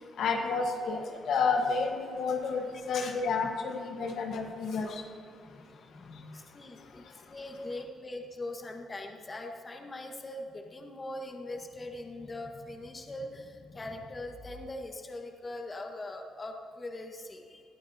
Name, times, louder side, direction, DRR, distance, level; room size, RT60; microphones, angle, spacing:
voice 1, 0.2-5.0, left 4 dB, 70° left, 2 dB, 1.4 m, -30 dB
voice 2, 5.4-17.6, left 1 dB, 30° left, 2 dB, 1.6 m, -41 dB
19.5 x 12.0 x 2.9 m, 2.4 s
cardioid pair, 90°, 0 cm